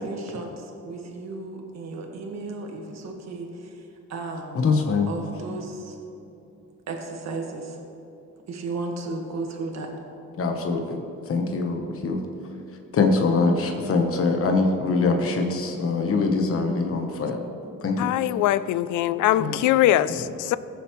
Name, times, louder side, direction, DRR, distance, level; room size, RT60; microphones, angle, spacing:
voice 1, 0.0-3.5 4.1-4.7 5.1-6.0 6.9-7.7 8.5-9.9, right 3 dB, 60° right, 1 dB, 1.7 m, -34 dB
voice 2, 4.5-5.1 10.4-12.2 12.9-17.4 17.8-18.1 19.4-19.6, left 3 dB, 45° left, 3 dB, 1.2 m, -23 dB
voice 3, 18.0-20.6, left 13 dB, 80° left, 16 dB, 0.5 m, -22 dB
17.5 x 7.1 x 3.2 m, 2.8 s
cardioid pair, 90°, 30 cm